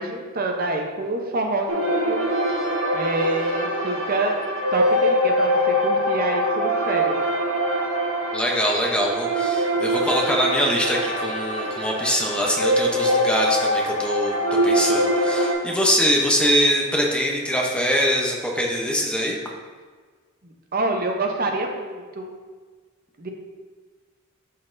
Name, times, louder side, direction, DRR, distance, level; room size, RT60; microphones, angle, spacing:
voice 1, 0.0-2.2 2.9-4.4 4.7-7.2 20.4-22.3 23.2-23.3, right 2 dB, 40° right, 2 dB, 0.7 m, -27 dB
sound 1, 1.7-15.5, equal, 85° right, 1.3 m, -23 dB
voice 2, 8.3-14.3 14.6-19.4, equal, 5° left, -1 dB, 0.7 m, -23 dB
11.5 x 4.1 x 2.6 m, 1.5 s
head